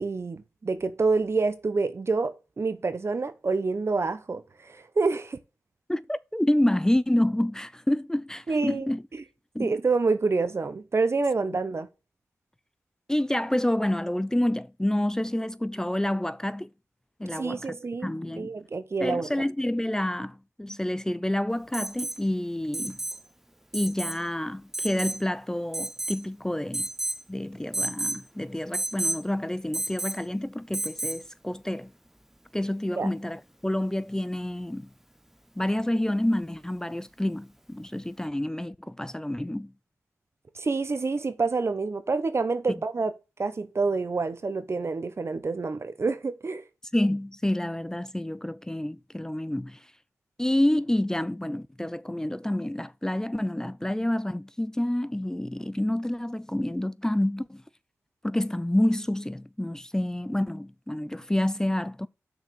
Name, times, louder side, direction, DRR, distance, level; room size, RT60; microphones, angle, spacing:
voice 1, 0.0-5.4 8.5-8.9 9.6-11.9 17.3-19.3 33.0-33.1 40.5-43.1 43.4-46.6, right 4 dB, 50° right, 1.0 m, -27 dB
voice 2, 5.9-9.0 9.5-9.7 13.1-16.7 17.2-17.7 18.0-18.5 19.0-23.0 23.7-26.9 27.3-31.9 32.5-34.9 35.6-39.7 46.9-49.8 50.4-57.6 58.2-62.1, left 1 dB, 10° left, 0.4 m, -28 dB
Alarm, 21.7-22.2 22.7-23.2 23.7-24.2 24.7-25.2 25.7-26.3 26.7-27.2 27.7-28.2 28.7-29.2 29.7-30.2 30.7-31.2 33.0-33.1, right 1 dB, 5° right, 0.8 m, -31 dB
6.2 x 5.1 x 6.8 m
cardioid pair, 45°, 6 cm